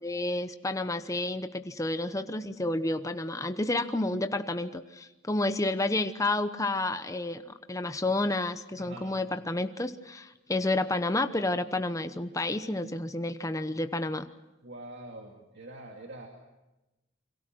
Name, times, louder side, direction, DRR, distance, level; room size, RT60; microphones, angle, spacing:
voice 1, 0.0-7.4 7.7-14.3, left 2 dB, 15° left, 9 dB, 0.9 m, -30 dB
voice 2, 8.8-9.2 14.6-16.3, right 1 dB, 60° right, 1 dB, 2.6 m, -44 dB
29.5 x 23.5 x 6.2 m, 1.0 s
head